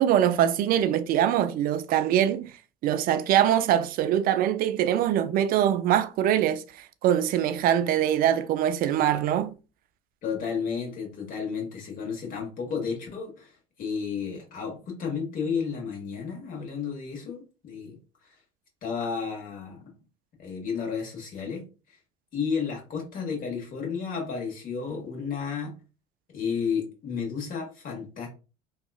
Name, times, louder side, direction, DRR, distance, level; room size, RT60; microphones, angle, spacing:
voice 1, 0.0-2.5 2.8-9.5, right 10 dB, 55° right, 0.4 m, -23 dB
voice 2, 10.2-18.0 18.8-19.9 20.4-21.7 22.3-25.8 26.3-28.3, left 6 dB, 50° left, 1.3 m, -32 dB
2.8 x 2.3 x 2.3 m
hypercardioid pair, 75°, 18 cm